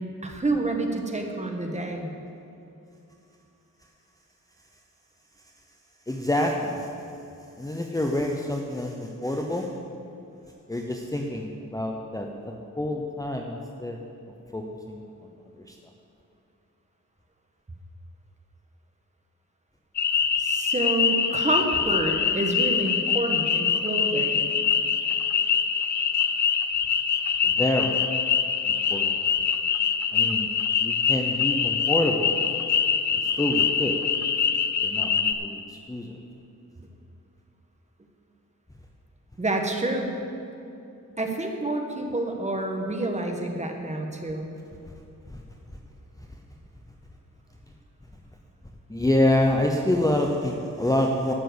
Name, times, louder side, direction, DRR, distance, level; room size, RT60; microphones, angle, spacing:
voice 1, 0.0-2.1 20.4-24.5 39.4-40.1 41.2-44.5, right 2 dB, 20° right, 3 dB, 1.3 m, -28 dB
voice 2, 6.1-6.9 7.6-9.7 10.7-14.0 14.5-15.8 27.4-28.0 28.6-29.2 30.1-30.5 30.8-32.4 33.4-34.0 34.8-36.2 45.3-45.4 48.9-51.3, left 1 dB, 10° left, 1 dB, 0.7 m, -27 dB
sound 1, 19.9-35.3, left 7 dB, 60° left, 0.7 m, -24 dB
11.5 x 7.5 x 7.9 m, 2.7 s
wide cardioid pair, 145°, 32 cm